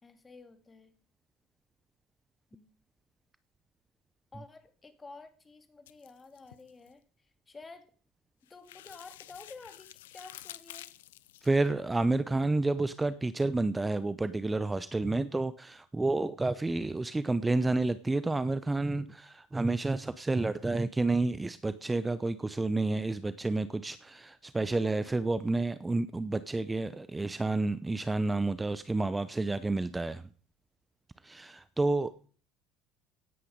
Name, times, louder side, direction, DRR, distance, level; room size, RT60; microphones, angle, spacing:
voice 1, 0.0-0.9 2.5-2.7 4.3-7.0 7.5-7.9 8.5-10.9, left 3 dB, 25° left, 8 dB, 2.8 m, -51 dB
sound 1, 5.9-6.9 8.5-11.6, left 14 dB, 80° left, 0.7 m, -50 dB
voice 2, 11.4-30.2 31.2-32.3, right 2 dB, 15° right, 14 dB, 0.8 m, -30 dB
17.0 x 9.7 x 5.2 m, 0.43 s
hypercardioid pair, 70°, 0 cm